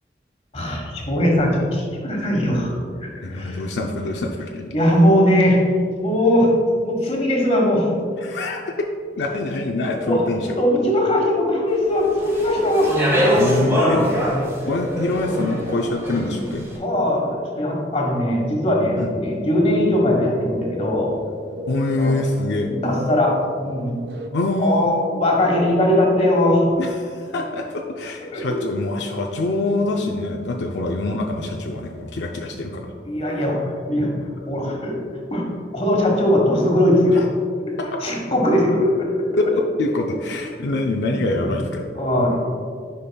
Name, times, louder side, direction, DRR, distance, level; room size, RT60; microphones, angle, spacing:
voice 1, 0.5-2.7 3.0-3.6 4.7-5.6 6.0-6.5 6.8-7.9 10.0-10.2 10.6-12.9 16.8-21.1 22.0-22.1 22.5-23.3 23.6-23.9 24.6-26.6 28.3-28.4 33.1-34.1 34.5-35.0 35.3-35.4 35.7-37.3 38.0-39.1 41.4-41.5 41.9-42.4, left 1 dB, 35° left, -1 dB, 1.3 m, -20 dB
voice 2, 3.2-4.7 8.2-8.9 9.2-10.6 13.4-14.1 14.7-16.7 19.0-19.1 21.7-22.7 24.3-24.9 26.8-32.9 37.1-37.2 39.4-41.8, left 2 dB, 75° left, 1 dB, 0.5 m, -25 dB
Speech, 12.2-16.5, equal, 15° right, 1.3 m, -22 dB
sound 1, 17.9-24.3, left 1 dB, 80° right, 0.6 m, -36 dB
10.0 x 5.4 x 2.3 m, 2.1 s
head